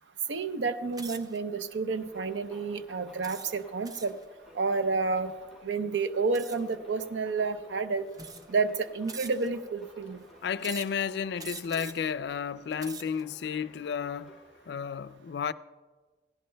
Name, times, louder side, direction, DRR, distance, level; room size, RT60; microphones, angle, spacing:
voice 1, 0.3-4.1 4.5-5.3 5.6-8.1 8.5-10.2, right 4 dB, 90° right, 0.6 m, -30 dB
sound 1, 0.9-1.4 2.0-2.3 3.2-4.2 6.3-6.7 7.6-7.7 8.1-8.6 9.1-9.7 10.6-11.0 11.4-12.1 12.6-13.2, right 4 dB, 20° right, 0.4 m, -44 dB
sound 2, 1.8-14.8, left 1 dB, ahead, 4.7 m, -56 dB
voice 2, 10.4-14.4 14.7-15.5, left 7 dB, 70° left, 0.3 m, -32 dB
17.0 x 16.5 x 2.2 m
head